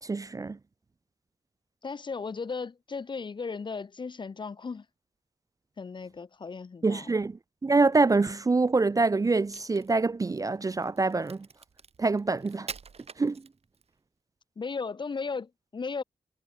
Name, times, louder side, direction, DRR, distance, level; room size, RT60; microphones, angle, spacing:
voice 1, 0.0-0.6 6.8-11.5 12.0-12.7 13.2-13.4, right 3 dB, 25° right, 0.4 m, -25 dB
voice 2, 1.8-4.9 5.8-7.1 14.6-16.0, left 4 dB, 30° left, 0.5 m, -36 dB
Crack, 9.3-13.9, right 6 dB, 45° right, 1.0 m, -46 dB
wide cardioid pair, 155°, 15 cm